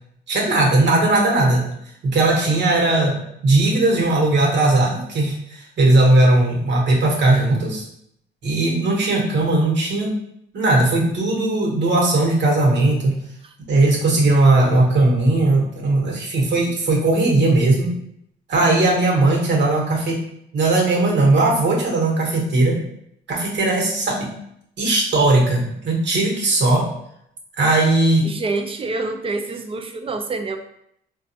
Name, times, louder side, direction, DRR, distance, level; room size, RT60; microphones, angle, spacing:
voice 1, 0.3-1.6 2.0-7.8 8.4-10.2 10.5-13.1 13.7-17.9 18.5-20.2 20.5-22.8 23.3-24.3 24.8-26.9 27.6-28.3, right 2 dB, 65° right, -1 dB, 1.1 m, -18 dB
voice 2, 28.2-30.6, right 3 dB, 30° right, 5 dB, 0.4 m, -27 dB
3.9 x 2.3 x 2.7 m, 0.73 s
cardioid pair, 90°, 20 cm